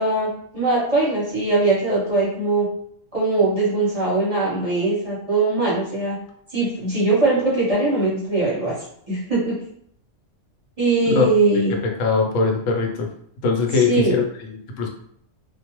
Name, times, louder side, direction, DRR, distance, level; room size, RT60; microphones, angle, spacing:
voice 1, 0.0-2.7 3.1-6.2 6.5-8.8 9.1-9.6 10.8-11.8 13.9-14.2, right 2 dB, 35° right, -7 dB, 0.7 m, -21 dB
voice 2, 11.8-13.1 13.4-14.9, left 4 dB, 85° left, 1 dB, 1.0 m, -21 dB
2.3 x 2.0 x 2.9 m, 0.67 s
omnidirectional pair, 1.3 m